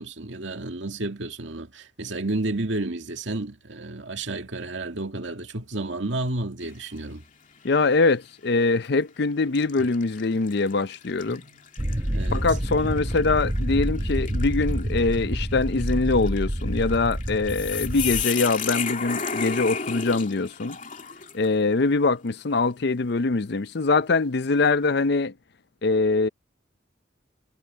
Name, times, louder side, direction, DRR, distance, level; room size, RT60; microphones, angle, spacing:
voice 1, 0.0-7.2 11.3-11.6 12.1-12.4, right 2 dB, 75° right, 2.1 m, -31 dB
sound 1, 6.6-7.1 7.6-7.7 8.7-8.9 9.5-21.6, left 7 dB, 45° left, 2.6 m, -34 dB
voice 2, 7.6-11.4 12.3-20.8 21.3-25.3 25.8-26.3, left 3 dB, 60° left, 0.6 m, -23 dB
sound 2, 11.8-18.2, equal, 20° right, 1.0 m, -28 dB
head